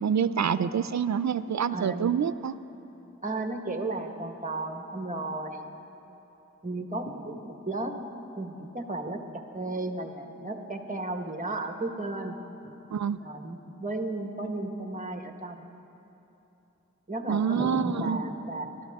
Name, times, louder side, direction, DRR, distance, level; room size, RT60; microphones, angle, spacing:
voice 1, 0.0-2.5 12.9-13.2 17.3-18.2, right 7 dB, 70° right, 15 dB, 0.5 m, -27 dB
voice 2, 0.6-0.9 1.7-2.1 3.2-5.7 6.6-8.0 8.4-9.2 9.5-12.7 13.2-15.6 17.1-18.7, right 2 dB, 25° right, 4 dB, 1.3 m, -34 dB
25.0 x 13.5 x 3.6 m, 3.0 s
wide cardioid pair, 75°, 29 cm